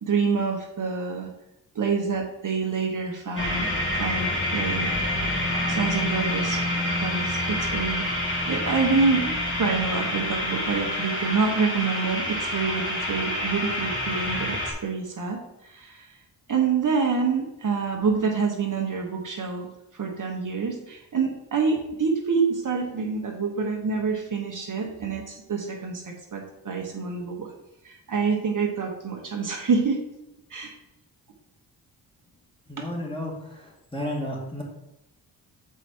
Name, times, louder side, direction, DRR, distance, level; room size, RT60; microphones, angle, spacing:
voice 1, 0.0-1.3 1.7-3.7 3.9-4.9 5.7-6.6 7.0-15.4 15.7-16.1 16.5-19.7 19.9-27.5 27.8-30.0 30.5-30.7, right 5 dB, 50° right, 0 dB, 1.2 m, -27 dB
sound 1, 3.4-14.7, left 1 dB, 30° left, 1.9 m, -27 dB
voice 2, 32.7-34.6, left 1 dB, 15° left, -2 dB, 2.0 m, -33 dB
7.0 x 4.7 x 4.4 m, 0.87 s
cardioid pair, 100°, 42 cm